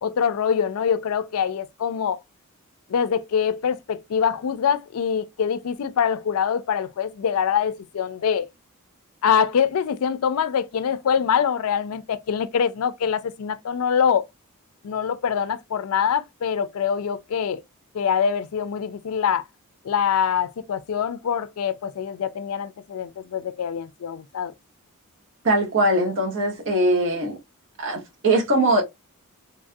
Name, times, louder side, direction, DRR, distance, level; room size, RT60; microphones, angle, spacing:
voice 1, 0.0-2.2 2.9-8.5 9.2-14.2 14.8-17.6 17.9-19.4 19.8-24.5, left 7 dB, 70° left, 0.4 m, -24 dB
voice 2, 25.4-27.4 27.8-28.8, right 1 dB, 60° right, 1.1 m, -21 dB
3.3 x 2.3 x 2.5 m
head